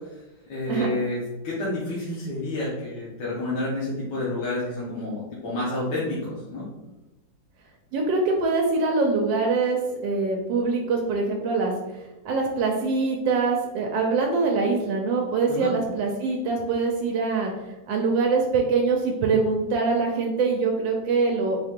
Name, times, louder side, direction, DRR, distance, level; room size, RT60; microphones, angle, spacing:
voice 1, 0.5-6.7 15.5-15.7, left 2 dB, 70° left, -7 dB, 1.6 m, -29 dB
voice 2, 7.9-17.5 17.9-21.6, right 4 dB, 80° right, 1 dB, 1.3 m, -24 dB
4.3 x 2.7 x 3.6 m, 1.0 s
omnidirectional pair, 2.0 m